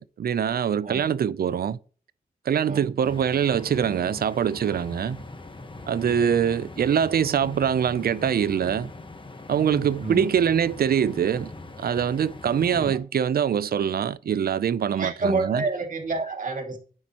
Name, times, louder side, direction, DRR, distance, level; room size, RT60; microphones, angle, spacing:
voice 1, 0.0-1.8 2.5-5.2 5.9-8.9 9.5-11.5 11.8-15.6, right 8 dB, 65° right, 0.5 m, -24 dB
sound 1, 3.0-13.0, left 2 dB, 30° left, 1.1 m, -41 dB
voice 2, 9.6-10.3 12.7-13.0 15.0-16.8, right 3 dB, 50° right, 2.3 m, -29 dB
9.7 x 7.6 x 2.9 m
cardioid pair, 70°, 17 cm